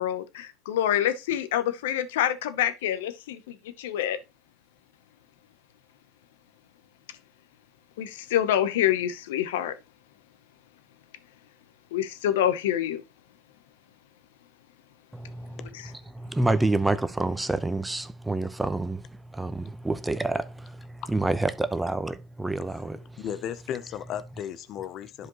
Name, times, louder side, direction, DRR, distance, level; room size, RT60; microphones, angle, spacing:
voice 1, 0.0-4.2 8.0-9.7 11.9-13.0, left 11 dB, 90° left, 0.8 m, -26 dB
voice 2, 15.1-23.3, right 2 dB, 10° right, 0.8 m, -28 dB
voice 3, 22.8-25.3, left 9 dB, 55° left, 0.7 m, -35 dB
11.0 x 5.0 x 3.0 m
supercardioid pair, 90°, 0 cm